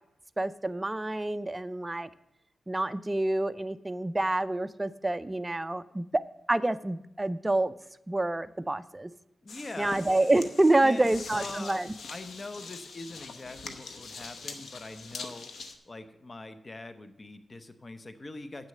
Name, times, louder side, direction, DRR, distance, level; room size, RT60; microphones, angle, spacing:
voice 1, 0.4-2.1 2.7-6.2 6.5-7.7 8.1-9.1 9.8-11.9, right 2 dB, 20° right, 12 dB, 0.4 m, -27 dB
voice 2, 9.4-10.0 10.8-11.8 12.1-15.5 15.8-18.7, left 2 dB, 35° left, 10 dB, 0.8 m, -43 dB
sound 1, 9.5-15.8, left 4 dB, 85° left, 0.9 m, -43 dB
8.2 x 6.4 x 7.5 m, 0.83 s
cardioid pair, 65°, 0 cm